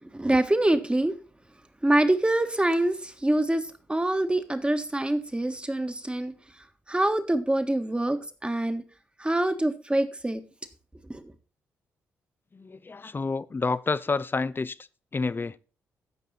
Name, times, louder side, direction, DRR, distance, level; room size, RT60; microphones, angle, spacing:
voice 1, 0.0-1.2 1.8-6.3 6.9-8.8 9.2-10.4 11.1-11.3, right 1 dB, 15° right, 1.6 m, -25 dB
voice 2, 12.5-14.8 15.1-15.6, left 4 dB, 30° left, 0.7 m, -29 dB
15.0 x 5.4 x 4.1 m
hypercardioid pair, 45°, 7 cm